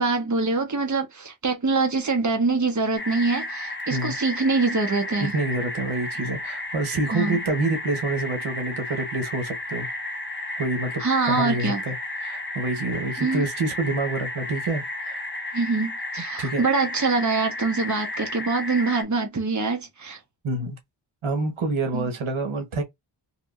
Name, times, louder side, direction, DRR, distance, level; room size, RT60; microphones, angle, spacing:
voice 1, 0.0-5.3 7.1-7.4 11.0-11.8 13.2-13.5 15.5-20.2 21.9-22.1, right 3 dB, 35° right, 1.1 m, -24 dB
sound 1, 3.0-19.0, left 2 dB, 25° left, 0.9 m, -33 dB
voice 2, 5.2-9.9 10.6-11.9 12.2-15.2 16.4-16.6 20.4-20.8 21.2-22.8, right 2 dB, 85° right, 1.1 m, -27 dB
3.5 x 2.8 x 2.4 m
wide cardioid pair, 60°, 47 cm